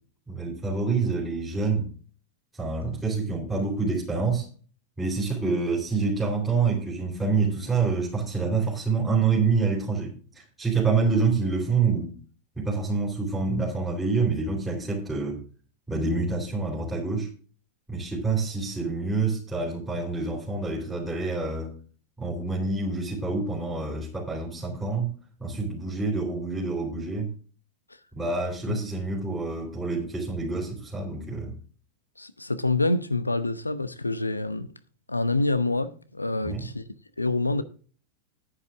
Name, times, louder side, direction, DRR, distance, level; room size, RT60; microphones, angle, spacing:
voice 1, 0.3-1.9 2.6-4.5 5.0-12.1 12.6-15.4 15.9-17.3 17.9-21.7 22.2-25.1 25.4-27.3 28.1-31.5 36.4-36.7, right 4 dB, 5° right, 3.8 m, -27 dB
voice 2, 32.2-34.7 35.1-36.8 37.2-37.6, left 2 dB, 85° left, 0.8 m, -26 dB
10.5 x 9.9 x 3.5 m
figure-of-eight pair, 90°, 0 cm